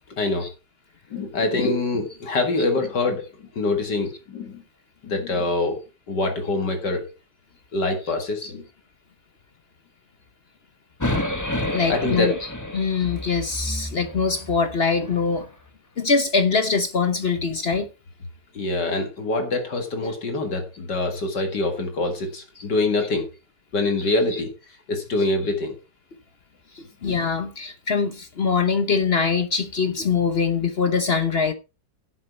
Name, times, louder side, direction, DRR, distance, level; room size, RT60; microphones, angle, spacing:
voice 1, 0.2-0.5 1.1-3.3 3.6-4.6 5.0-5.8 6.1-7.1 7.7-8.6 11.9-12.4 18.5-23.3 23.7-24.5 24.9-25.8, left 2 dB, 65° left, 2.5 m, -24 dB
sound 1, 11.0-15.2, left 1 dB, 15° left, 0.9 m, -30 dB
voice 2, 11.7-15.5 16.0-17.9 20.0-20.1 22.6-22.7 24.0-24.1 26.7-31.5, left 5 dB, 45° left, 0.9 m, -23 dB
11.0 x 7.7 x 4.4 m
omnidirectional pair, 2.0 m